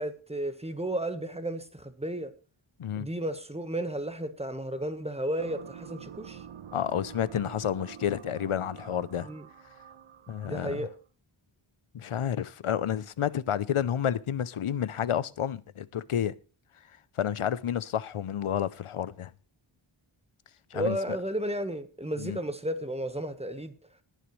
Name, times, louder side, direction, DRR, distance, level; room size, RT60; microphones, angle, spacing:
voice 1, 0.0-2.3 3.0-6.5 9.2-9.5 10.4-10.9 20.7-23.9, right 1 dB, 10° right, 1.3 m, -33 dB
sound 1, 5.4-11.0, right 8 dB, 70° right, 0.7 m, -47 dB
voice 2, 6.7-9.3 10.3-10.9 11.9-16.3 17.1-19.3 20.7-21.0 22.2-22.4, left 9 dB, 80° left, 0.7 m, -30 dB
19.5 x 9.1 x 3.2 m
wide cardioid pair, 80°, 50 cm